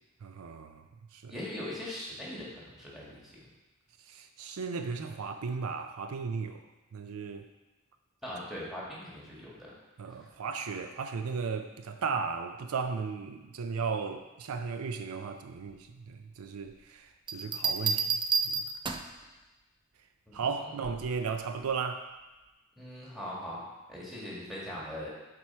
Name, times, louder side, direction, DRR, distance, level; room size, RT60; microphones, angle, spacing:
voice 1, 0.2-0.8 1.1-1.3 4.1-6.6 6.9-7.5 10.0-18.6 20.3-22.0, right 5 dB, 85° right, 8 dB, 0.5 m, -35 dB
voice 2, 1.3-3.4 8.2-9.7 10.2-10.3 20.3-20.7 22.8-25.1, left 1 dB, ahead, -6 dB, 1.9 m, -41 dB
sound 1, 17.3-19.2 20.8-21.2, right 5 dB, 20° right, 0.3 m, -30 dB
7.7 x 4.5 x 4.4 m, 1.1 s
head